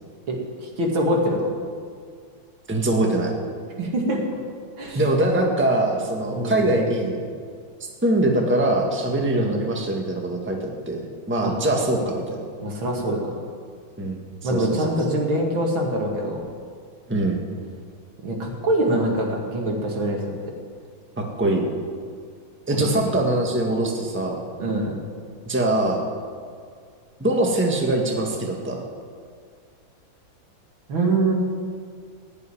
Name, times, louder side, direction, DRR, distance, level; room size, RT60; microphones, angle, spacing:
voice 1, 0.3-1.5 3.8-4.2 4.8-5.0 6.3-6.7 9.4-9.6 11.4-11.5 12.6-13.3 14.4-16.4 18.2-20.2 22.7-23.1 24.6-24.9 30.9-31.3, right 1 dB, 80° right, 0 dB, 2.9 m, -24 dB
voice 2, 2.7-3.3 4.9-7.2 8.0-12.4 14.0-14.2 14.5-14.8 17.1-17.4 21.2-21.6 22.7-24.4 25.4-26.0 27.2-28.8, right 1 dB, 5° right, 1 dB, 1.5 m, -23 dB
16.5 x 6.8 x 10.0 m, 2.1 s
omnidirectional pair, 2.2 m